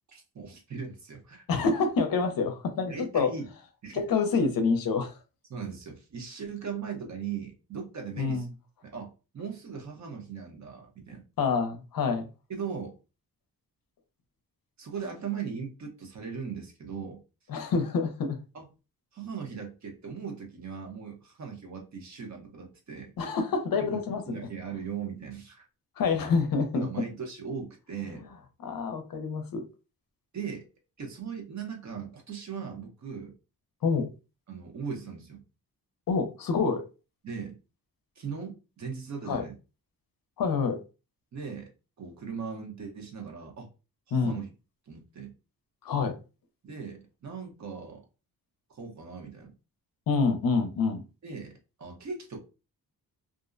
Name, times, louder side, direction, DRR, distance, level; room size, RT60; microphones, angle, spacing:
voice 1, 0.1-1.4 2.9-3.5 3.8-4.0 5.5-8.5 8.9-11.2 12.5-12.9 14.8-17.2 18.5-18.7 19.1-23.1 23.9-24.0 24.3-25.6 26.7-28.3 30.3-30.7 31.0-33.3 34.5-35.4 37.2-37.6 38.2-39.5 41.3-41.7 42.0-43.7 44.1-44.5 44.9-45.3 46.6-48.0 48.7-49.5 51.2-52.4, right 6 dB, 45° right, 0.8 m, -39 dB
voice 2, 1.5-3.3 3.9-5.2 8.2-8.5 11.4-12.3 17.5-18.4 23.2-24.4 26.0-26.9 28.6-29.7 33.8-34.1 36.1-36.8 39.3-39.4 40.4-40.8 44.1-44.4 45.8-46.2 50.1-51.0, left 4 dB, 60° left, 0.6 m, -27 dB
2.5 x 2.0 x 2.5 m
wide cardioid pair, 130°, 39 cm